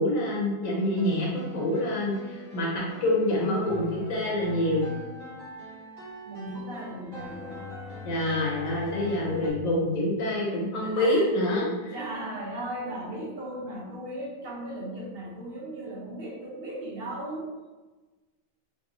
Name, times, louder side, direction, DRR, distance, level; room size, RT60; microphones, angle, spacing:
voice 1, 0.0-4.9 8.0-11.9, left 1 dB, 85° left, -3 dB, 1.2 m, -26 dB
sound 1, 0.6-9.5, left 1 dB, 75° right, 1.5 m, -42 dB
voice 2, 6.2-7.7 10.5-11.4 11.9-17.6, right 1 dB, 50° right, -5 dB, 1.1 m, -37 dB
3.2 x 3.0 x 2.9 m, 1.2 s
omnidirectional pair, 1.4 m